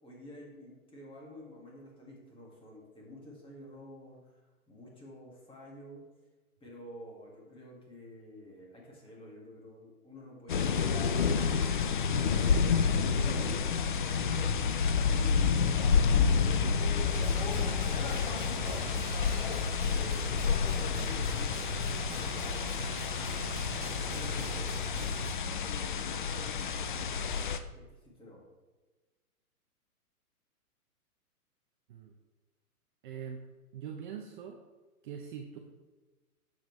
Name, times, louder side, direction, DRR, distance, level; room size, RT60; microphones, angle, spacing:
voice 1, 0.0-6.0 6.6-11.2 12.0-18.5 19.1-20.3 20.7-22.9 24.0-27.3 27.7-28.4, left 1 dB, 10° left, -3 dB, 2.1 m, -50 dB
sound 1, 10.5-27.6, left 6 dB, 35° left, 0.4 m, -29 dB
sound 2, 17.1-25.3, right 3 dB, 15° right, 1.7 m, -42 dB
voice 2, 33.0-33.4 33.7-34.6 35.0-35.6, right 8 dB, 35° right, 2 dB, 0.7 m, -42 dB
8.6 x 7.2 x 3.2 m, 1.2 s
hypercardioid pair, 135°, 46 cm